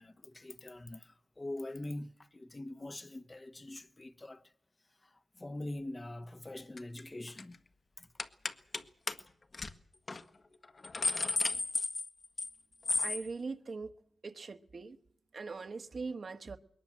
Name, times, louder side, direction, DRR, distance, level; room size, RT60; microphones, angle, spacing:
voice 1, 0.0-4.4 5.4-7.6 8.0-8.1, left 1 dB, 25° left, 1.2 m, -43 dB
sound 1, 6.8-7.0 7.3-7.5 8.2-8.8 9.1-9.2 9.5-9.7 10.1-10.2 10.6-12.5 12.8-13.2, left 3 dB, 40° left, 1.6 m, -33 dB
voice 2, 13.0-13.9 14.2-15.0 15.3-16.6, right 4 dB, 50° right, 1.6 m, -41 dB
22.0 x 19.5 x 7.6 m
cardioid pair, 75°, 0 cm